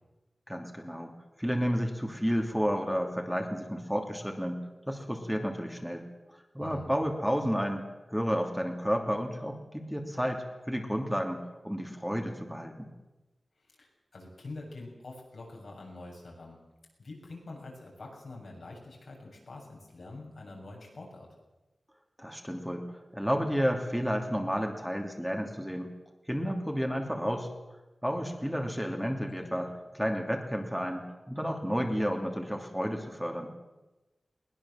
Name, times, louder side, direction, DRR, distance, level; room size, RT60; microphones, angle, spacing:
voice 1, 0.5-1.1 1.4-4.6 4.9-6.0 6.5-7.8 8.1-12.9 22.2-22.8 23.1-25.9 26.3-27.5 28.0-29.7 30.0-33.5, equal, ahead, 3 dB, 2.8 m, -31 dB
voice 2, 6.6-6.9 13.7-16.6 17.0-21.3 29.4-29.7, left 2 dB, 80° left, -1 dB, 7.6 m, -46 dB
21.5 x 20.0 x 7.5 m, 1.1 s
wide cardioid pair, 90°, 0 cm